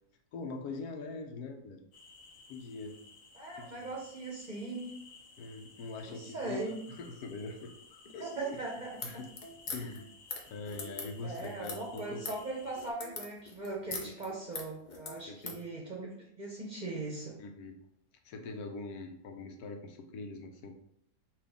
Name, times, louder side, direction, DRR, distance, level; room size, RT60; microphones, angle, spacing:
voice 1, 0.3-1.8 2.5-3.0 3.6-3.9 5.4-7.7 8.0-8.6 9.0-9.3 9.7-10.1 10.5-12.2 14.0-14.1 15.3-15.7 17.4-17.8 18.2-20.7, left 3 dB, 85° left, 5 dB, 1.2 m, -43 dB
sound 1, 1.9-12.9, left 3 dB, 65° left, 1.2 m, -57 dB
voice 2, 3.3-4.9 6.1-6.8 8.2-8.9 11.2-17.4, right 3 dB, 35° right, -2 dB, 0.8 m, -39 dB
sound 2, 8.9-15.6, left 3 dB, 45° left, 0.7 m, -43 dB
5.9 x 2.5 x 3.5 m, 0.71 s
omnidirectional pair, 1.6 m